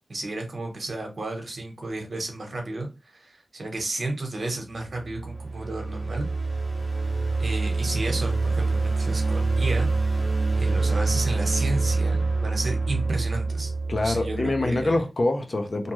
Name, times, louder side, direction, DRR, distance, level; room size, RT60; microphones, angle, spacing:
voice 1, 0.1-6.3 7.4-9.9 10.6-13.7 14.0-14.9, right 2 dB, 65° right, 0.9 m, -32 dB
sound 1, 4.8-15.0, right 3 dB, 30° right, 0.8 m, -26 dB
voice 2, 13.9-15.9, left 2 dB, 50° left, 0.6 m, -25 dB
2.7 x 2.3 x 3.0 m
wide cardioid pair, 65°, 0 cm